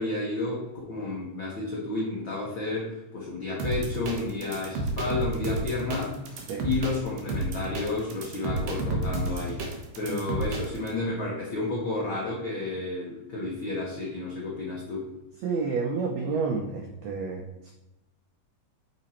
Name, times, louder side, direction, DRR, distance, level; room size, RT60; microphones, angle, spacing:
voice 1, 0.0-6.1 6.6-9.6 9.9-15.1, left 2 dB, 70° left, -5 dB, 1.1 m, -31 dB
sound 1, 3.6-10.9, right 2 dB, 65° right, 1.7 m, -31 dB
voice 2, 10.0-10.4 15.4-17.7, right 4 dB, 90° right, 1 dB, 1.5 m, -30 dB
7.1 x 4.0 x 4.3 m, 0.96 s
omnidirectional pair, 4.0 m